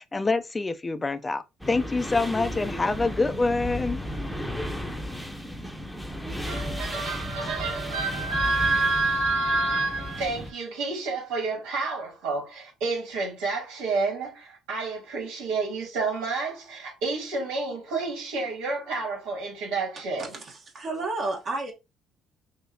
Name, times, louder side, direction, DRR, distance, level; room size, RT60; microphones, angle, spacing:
voice 1, 0.0-4.0, left 3 dB, 20° left, 0.4 m, -26 dB
sound 1, 1.6-10.5, equal, ahead, 0.8 m, -34 dB
voice 2, 6.5-20.4, right 3 dB, 85° right, 2.4 m, -29 dB
voice 3, 20.2-21.7, right 2 dB, 45° right, 1.2 m, -31 dB
5.5 x 2.8 x 2.7 m
cardioid pair, 95°, 0 cm